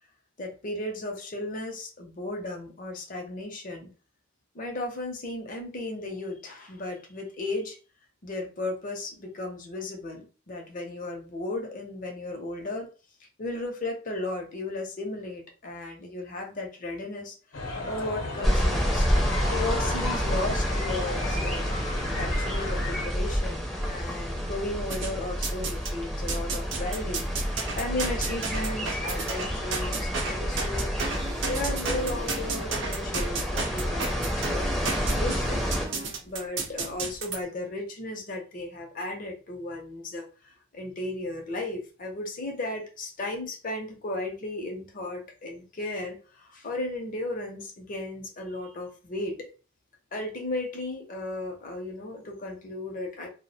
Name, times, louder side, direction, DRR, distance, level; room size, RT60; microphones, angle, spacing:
voice 1, 0.4-3.9 4.5-7.8 8.2-12.9 13.4-19.1 19.5-21.7 22.1-31.1 31.5-35.6 36.2-49.5 50.1-53.3, left 2 dB, 45° left, 0.6 m, -35 dB
sound 1, 17.5-23.1, left 2 dB, 85° left, 0.7 m, -34 dB
sound 2, 18.4-35.9, equal, ahead, 0.5 m, -29 dB
sound 3, 24.9-25.9 26.3-37.4, right 4 dB, 70° right, 0.6 m, -33 dB
2.3 x 2.1 x 2.6 m
head